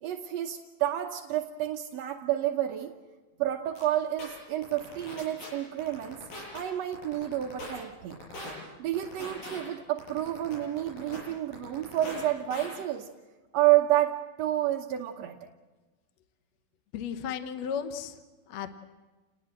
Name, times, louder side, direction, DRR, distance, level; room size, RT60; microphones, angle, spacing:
voice 1, 0.0-2.9 3.4-6.2 6.5-8.2 8.8-13.1 13.5-15.4, right 13 dB, 65° right, 2 dB, 1.8 m, -29 dB
sound 1, 3.8-3.9 4.2-4.3 4.6-5.5 5.8-6.6 6.9-7.7 8.1-8.5 8.9-9.6 10.0-11.2 11.5-12.2 12.5-12.7, left 1 dB, 90° left, 10.0 m, -41 dB
voice 2, 16.9-18.2 18.5-18.7, left 7 dB, 60° left, 8 dB, 1.9 m, -34 dB
29.5 x 20.0 x 7.7 m, 1.2 s
omnidirectional pair, 3.9 m